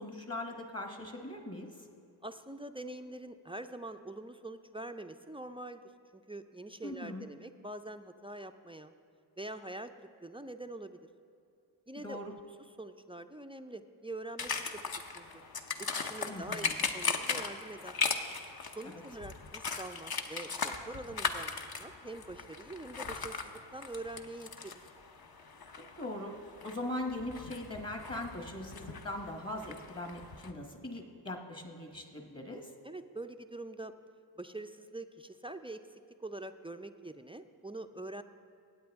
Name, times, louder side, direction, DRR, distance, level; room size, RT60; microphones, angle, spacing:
voice 1, 0.0-1.7 6.8-7.2 12.0-12.3 16.3-16.8 26.0-26.3 26.6-32.7, left 1 dB, 30° left, 3 dB, 1.3 m, -40 dB
voice 2, 2.2-5.8 6.1-8.9 9.4-11.0 11.9-12.4 12.8-14.7 15.1-15.4 15.8-16.7 16.9-18.0 18.8-21.5 21.8-24.8 32.8-33.9 34.4-38.2, right 2 dB, 10° right, 9 dB, 0.4 m, -44 dB
sound 1, 14.4-30.5, left 5 dB, 45° left, 0.9 m, -38 dB
16.5 x 8.7 x 3.5 m, 2.6 s
cardioid pair, 45°, 49 cm